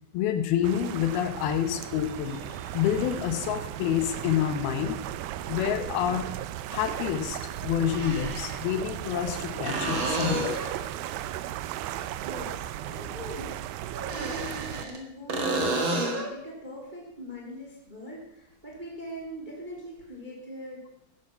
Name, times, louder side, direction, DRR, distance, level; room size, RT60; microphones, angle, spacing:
voice 1, 0.1-5.0 5.5-6.3 6.7-10.5, left 10 dB, 80° left, 9 dB, 3.0 m, -28 dB
sound 1, 0.6-14.9, right 12 dB, 80° right, 2.4 m, -36 dB
sound 2, 6.5-6.6 7.8-8.6 9.7-10.8 13.9-15.0 15.3-16.3 20.0-20.1, right 2 dB, 45° right, 1.9 m, -30 dB
voice 2, 11.8-12.5 12.9-20.8, equal, 15° right, -1 dB, 2.6 m, -42 dB
13.5 x 10.5 x 5.8 m, 0.78 s
omnidirectional pair, 4.5 m